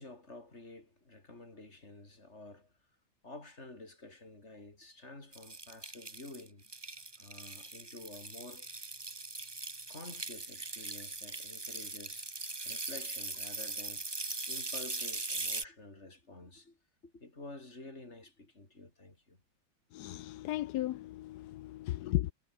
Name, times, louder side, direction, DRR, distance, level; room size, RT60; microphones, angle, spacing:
voice 1, 0.0-2.7 3.2-6.7 7.2-8.7 9.9-12.3 12.6-14.1 14.5-19.4 21.8-21.9, left 2 dB, 45° left, 4.9 m, -50 dB
sound 1, 5.3-15.6, right 3 dB, 15° right, 1.1 m, -40 dB
voice 2, 19.9-22.3, left 15 dB, 85° left, 1.2 m, -35 dB
omnidirectional pair, 1.7 m